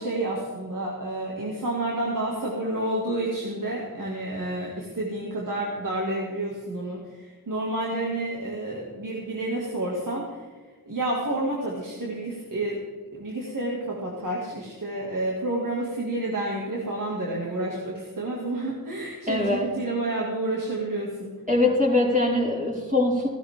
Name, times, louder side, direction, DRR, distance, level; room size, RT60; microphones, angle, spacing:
voice 1, 0.0-10.3 10.9-12.8 13.1-21.3, right 1 dB, 65° right, -4 dB, 2.5 m, -29 dB
voice 2, 19.3-19.7 21.5-23.3, left 2 dB, 20° right, -6 dB, 5.1 m, -22 dB
16.5 x 12.5 x 3.8 m, 1.4 s
wide cardioid pair, 60°, 35 cm